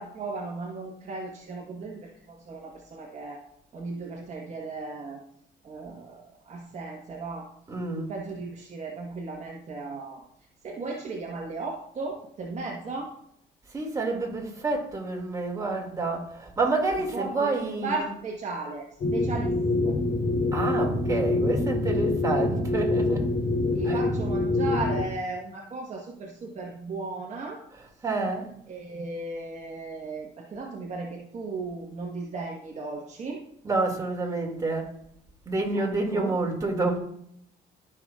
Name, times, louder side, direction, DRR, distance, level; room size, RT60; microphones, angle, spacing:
voice 1, 0.0-3.4 3.7-5.2 5.6-7.5 8.1-10.2 10.6-13.1 17.1-18.9 19.1-20.0 23.7-27.6 28.7-33.4 35.7-36.4, right 3 dB, 40° right, -1 dB, 1.3 m, -36 dB
voice 2, 7.7-8.2 13.7-18.0 20.5-23.3 23.8-24.0 27.7-28.5 33.6-34.9 35.5-37.0, right 3 dB, 20° right, 0 dB, 2.3 m, -28 dB
sound 1, 19.0-25.1, left 2 dB, 55° left, 2.7 m, -25 dB
14.5 x 5.9 x 2.4 m, 0.72 s
cardioid pair, 110°, 17 cm